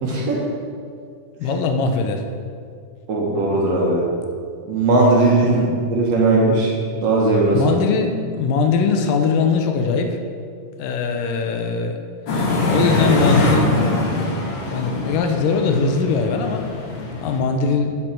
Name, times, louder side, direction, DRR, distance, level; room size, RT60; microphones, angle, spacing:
voice 1, 0.0-0.4 3.1-4.1 4.7-5.6 5.9-6.7 7.0-7.7, right 2 dB, 65° right, -3 dB, 1.9 m, -18 dB
voice 2, 1.4-2.2 5.4-5.8 7.5-10.2 10.8-12.0 12.7-13.8 14.7-16.6 17.2-17.9, left 5 dB, 85° left, 5 dB, 2.4 m, -21 dB
sound 1, 12.3-17.4, left 2 dB, 55° left, 1.3 m, -22 dB
7.7 x 7.6 x 4.4 m, 2.2 s
omnidirectional pair, 3.8 m